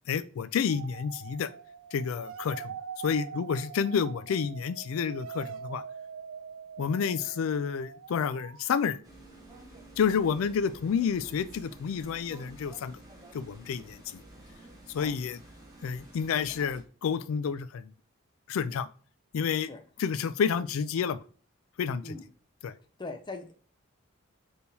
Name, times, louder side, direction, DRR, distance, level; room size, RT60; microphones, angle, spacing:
voice 1, 0.1-1.5 1.9-2.8 3.0-5.8 6.8-9.0 10.0-13.0 13.3-14.2 14.9-15.4 15.8-17.9 18.5-18.9 19.3-19.7 20.0-21.2 21.8-22.1 22.6-22.7, left 6 dB, 80° left, 0.3 m, -29 dB
sound 1, 0.7-8.9, right 7 dB, 65° right, 0.3 m, -44 dB
sound 2, 9.0-16.8, right 1 dB, 20° right, 1.0 m, -50 dB
voice 2, 23.0-23.5, left 3 dB, 20° left, 0.6 m, -40 dB
4.4 x 3.4 x 2.7 m
head